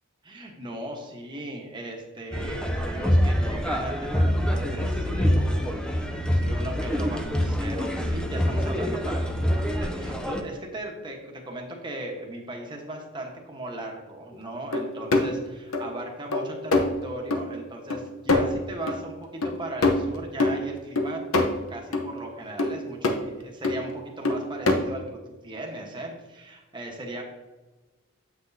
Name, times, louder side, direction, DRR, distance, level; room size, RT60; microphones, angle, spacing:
voice 1, 0.2-5.7 6.1-27.2, right 1 dB, 20° right, 0 dB, 1.1 m, -38 dB
sound 1, 2.3-10.4, equal, 5° left, 0.5 m, -25 dB
sound 2, 14.7-15.4 15.7-16.1 16.3-16.9 17.3-17.5 17.9-18.0 18.3-19.0 19.4-19.6 19.8-20.6 21.0-21.5 21.9-22.1 22.6-23.2 23.6-23.9 24.2-24.8, left 2 dB, 80° left, 0.8 m, -24 dB
7.9 x 6.0 x 2.7 m, 1.2 s
head